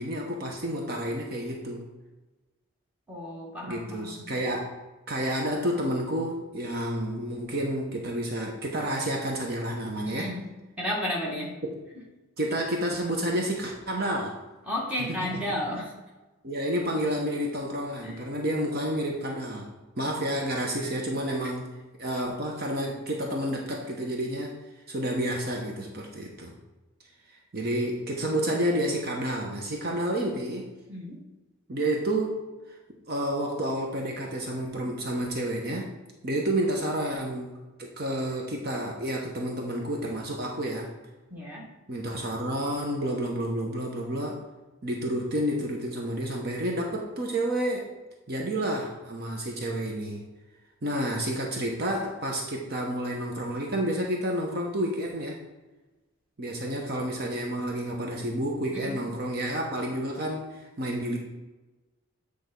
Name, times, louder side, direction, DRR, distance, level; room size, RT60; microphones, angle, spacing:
voice 1, 0.0-1.9 3.6-4.7 5.1-10.3 11.6-11.7 12.4-14.4 15.0-15.6 16.4-19.7 20.0-21.7 22.0-24.5 24.9-26.5 27.5-30.7 31.7-32.4 33.1-35.9 36.2-37.5 37.8-40.9 41.9-44.4 44.8-47.9 48.3-50.2 50.8-55.4 56.4-61.2, right 1 dB, 45° right, 0 dB, 0.9 m, -30 dB
voice 2, 3.1-4.2 10.0-10.5 10.8-11.5 14.7-15.9 18.0-18.2 30.9-31.2 41.3-41.6 58.7-59.0, left 1 dB, 5° right, -4 dB, 1.5 m, -32 dB
8.3 x 3.4 x 5.2 m, 1.1 s
head